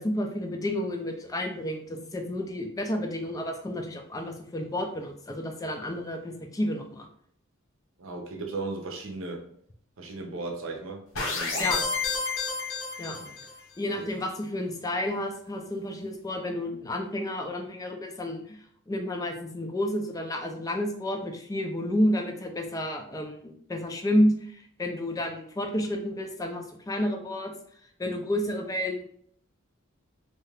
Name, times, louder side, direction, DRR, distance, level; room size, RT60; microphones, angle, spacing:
voice 1, 0.0-7.1 11.6-11.8 13.0-13.2 13.8-18.6 18.9-27.5 28.0-29.0, left 1 dB, 15° left, 3 dB, 0.3 m, -30 dB
voice 2, 8.0-9.4 10.0-11.0 11.3-11.9 13.0-13.3 14.0-14.1, right 2 dB, 75° right, 2 dB, 0.6 m, -36 dB
sound 1, 11.2-13.6, left 4 dB, 80° left, 0.9 m, -30 dB
2.7 x 2.3 x 3.2 m, 0.64 s
head